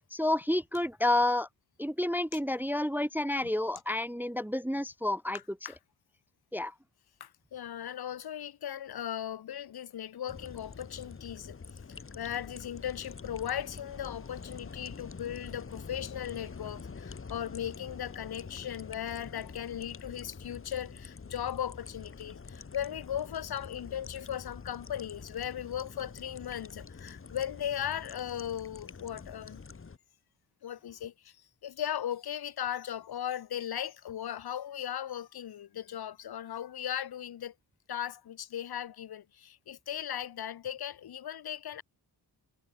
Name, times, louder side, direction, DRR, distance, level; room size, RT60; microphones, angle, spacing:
voice 1, 0.1-1.5 1.8-5.4 6.5-6.7, left 1 dB, 5° right, 0.3 m, -29 dB
voice 2, 7.2-11.6 11.9-29.6 30.6-31.4 31.6-37.5 37.9-41.8, left 10 dB, 70° left, 1.5 m, -37 dB
sound 1, 10.3-30.0, left 5 dB, 35° left, 4.2 m, -46 dB
wide cardioid pair, 165°, 39 cm